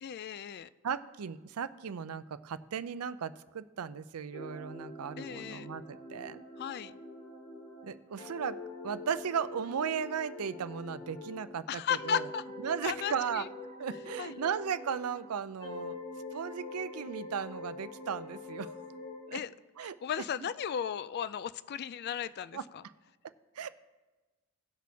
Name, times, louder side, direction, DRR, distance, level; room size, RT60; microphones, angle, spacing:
voice 1, 0.0-0.7 5.2-5.7 6.6-7.0 11.7-12.4 12.8-13.5 14.2-14.4 19.3-19.5 19.8-22.8, left 8 dB, 45° left, 16 dB, 0.3 m, -35 dB
voice 2, 0.8-6.4 7.8-8.6 8.8-12.3 12.6-13.5 13.8-16.0 16.3-18.7 19.3-19.4 19.8-20.5 22.5-22.6 23.6-23.7, right 7 dB, 85° right, 14 dB, 0.5 m, -36 dB
sound 1, 4.3-11.5 11.9-15.3 15.6-19.3, left 3 dB, 75° left, 2.4 m, -45 dB
18.0 x 6.2 x 2.8 m, 1.2 s
head